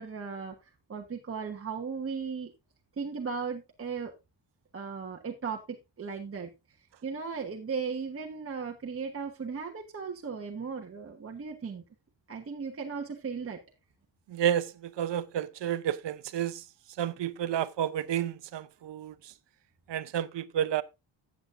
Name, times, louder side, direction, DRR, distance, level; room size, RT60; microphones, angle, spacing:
voice 1, 0.0-2.5 3.0-4.1 4.7-6.5 7.0-11.8 12.3-13.6, right 5 dB, 30° right, 1.3 m, -36 dB
voice 2, 14.3-16.6 17.0-19.3 19.9-20.8, right 10 dB, 70° right, 0.9 m, -31 dB
15.0 x 8.6 x 2.6 m
wide cardioid pair, 170°, 45 cm